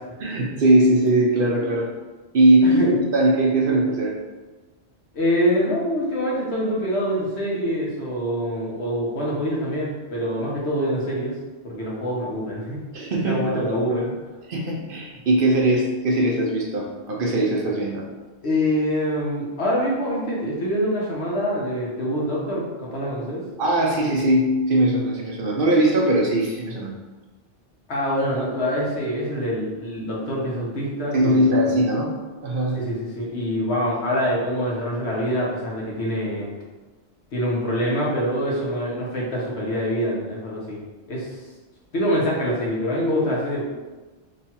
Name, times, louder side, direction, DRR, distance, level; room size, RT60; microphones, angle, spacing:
voice 1, 0.2-1.9 2.3-4.1 12.9-13.8 14.5-18.0 23.6-27.0 31.1-32.1 32.4-32.8, right 1 dB, 60° right, -1 dB, 0.7 m, -20 dB
voice 2, 5.1-11.4 11.6-12.8 13.2-14.2 18.4-23.4 27.9-31.6 32.7-36.5 37.3-40.8 41.1-41.3 41.9-43.6, equal, 75° left, -4 dB, 1.2 m, -25 dB
3.1 x 2.3 x 4.2 m, 1.2 s
omnidirectional pair, 1.1 m